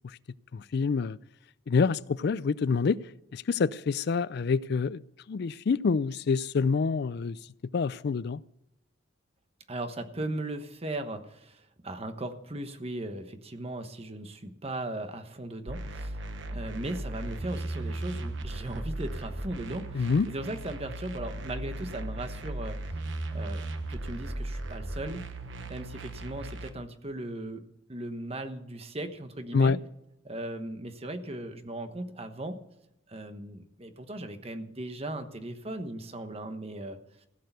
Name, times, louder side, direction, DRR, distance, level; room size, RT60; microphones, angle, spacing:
voice 1, 0.5-1.2 1.7-3.0 3.3-5.0 5.3-7.4 7.7-8.4 19.9-20.3 29.5-29.8, left 5 dB, 55° left, 0.4 m, -26 dB
voice 2, 9.7-16.2 16.5-22.8 23.3-25.2 25.7-27.6 27.9-29.8 30.2-32.6 33.1-37.0, right 1 dB, 30° right, 1.1 m, -37 dB
sound 1, 15.7-26.7, right 2 dB, 70° right, 1.1 m, -37 dB
16.0 x 6.6 x 8.1 m
head